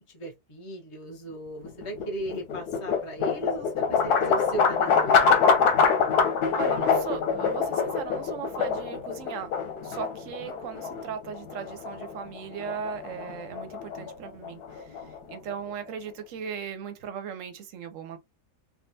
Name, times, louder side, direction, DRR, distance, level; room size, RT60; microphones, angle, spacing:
voice 1, 0.1-5.3, right 2 dB, 25° left, 0.9 m, -37 dB
sound 1, 1.6-15.7, left 5 dB, 85° left, 1.3 m, -25 dB
voice 2, 6.5-9.5 9.8-15.0 15.3-18.2, right 7 dB, 65° right, 0.9 m, -38 dB
3.4 x 2.4 x 2.6 m
omnidirectional pair, 1.6 m